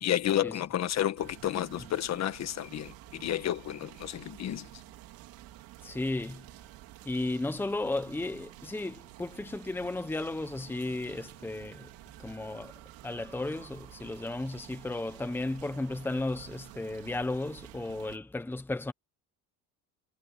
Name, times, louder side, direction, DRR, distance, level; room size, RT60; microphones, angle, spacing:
voice 1, 0.0-4.7, left 11 dB, 50° left, 1.6 m, -31 dB
sound 1, 1.2-18.2, right 17 dB, 85° right, 3.1 m, -50 dB
voice 2, 5.8-6.4 7.0-11.9 12.2-12.7 13.0-18.9, left 2 dB, 5° left, 1.1 m, -34 dB
cardioid pair, 140°, 35 cm